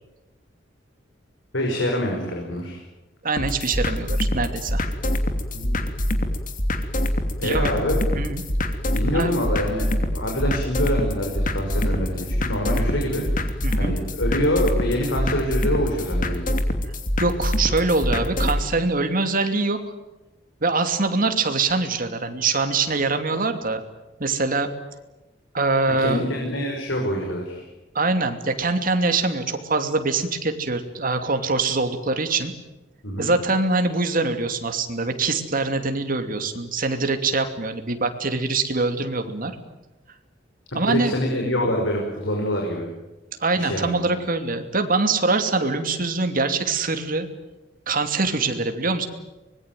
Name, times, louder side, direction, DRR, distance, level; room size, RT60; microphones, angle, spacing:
voice 1, 1.5-2.8 5.5-5.8 7.4-8.0 8.9-9.8 10.1-13.4 13.7-16.4 26.0-27.6 33.0-33.3 40.7-42.9 43.5-44.0, equal, 80° left, 0 dB, 5.7 m, -25 dB
voice 2, 3.2-4.8 7.4-7.7 8.1-8.4 9.1-9.3 13.6-13.9 17.2-19.8 20.6-23.8 24.2-24.7 25.5-26.3 27.9-32.5 33.2-39.6 40.7-41.1 43.4-47.3 47.9-49.1, right 3 dB, 50° right, 7 dB, 2.8 m, -23 dB
sound 1, 3.4-18.6, left 1 dB, 45° left, 2.8 m, -25 dB
25.0 x 21.5 x 9.3 m, 1.1 s
head